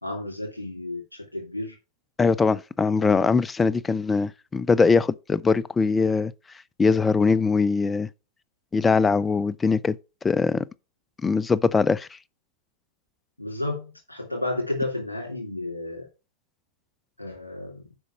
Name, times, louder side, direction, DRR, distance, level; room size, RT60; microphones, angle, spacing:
voice 1, 0.0-1.7 13.4-16.1 17.2-17.8, left 2 dB, 80° left, 2.8 m, -32 dB
voice 2, 2.2-6.3 6.8-8.1 8.7-10.0 10.2-10.6 11.2-12.1, left 4 dB, 15° left, 0.4 m, -21 dB
7.9 x 5.2 x 5.8 m
figure-of-eight pair, 90°, 0 cm